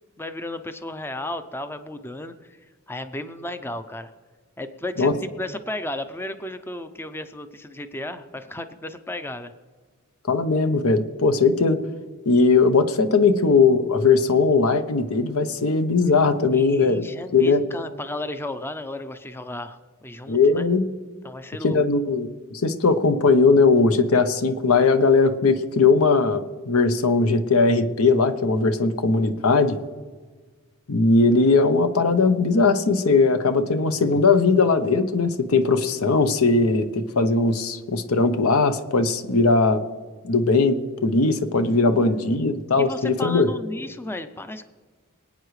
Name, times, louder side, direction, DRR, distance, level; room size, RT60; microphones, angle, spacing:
voice 1, 0.2-2.6 2.9-4.1 4.6-9.5 16.5-20.7 21.2-21.9 41.6-42.4 42.8-44.7, left 1 dB, 10° left, 9 dB, 0.5 m, -34 dB
voice 2, 10.3-11.8 12.3-17.0 17.3-17.6 20.3-20.9 21.6-29.8 30.9-39.8 40.2-43.5, left 3 dB, 75° left, 9 dB, 0.8 m, -19 dB
25.5 x 9.0 x 3.2 m, 1.4 s
head